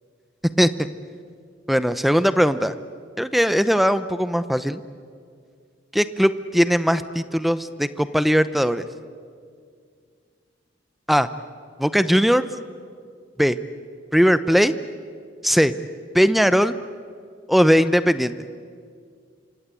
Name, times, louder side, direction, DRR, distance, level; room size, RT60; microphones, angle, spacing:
voice 1, 1.7-2.7 3.2-4.8 5.9-8.8 11.1-11.3 11.8-12.4 13.4-13.6 14.1-14.7 15.4-15.7 16.1-16.7 17.5-18.3, equal, ahead, 13 dB, 0.8 m, -19 dB
27.5 x 25.0 x 8.5 m, 2.1 s
head